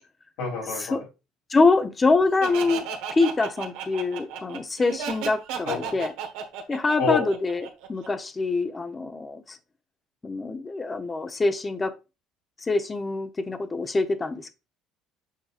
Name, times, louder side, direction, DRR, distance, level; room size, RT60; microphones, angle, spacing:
voice 1, 0.4-1.0 5.6-6.0 7.0-7.3, left 5 dB, 80° left, 3.8 m, -28 dB
voice 2, 1.5-2.8 3.1-6.1 6.7-9.6 10.2-11.9 12.7-14.5, left 3 dB, 25° left, 1.0 m, -25 dB
Laughter, 2.4-8.1, right 7 dB, 80° right, 1.3 m, -34 dB
7.5 x 5.4 x 2.5 m
supercardioid pair, 95°, 0 cm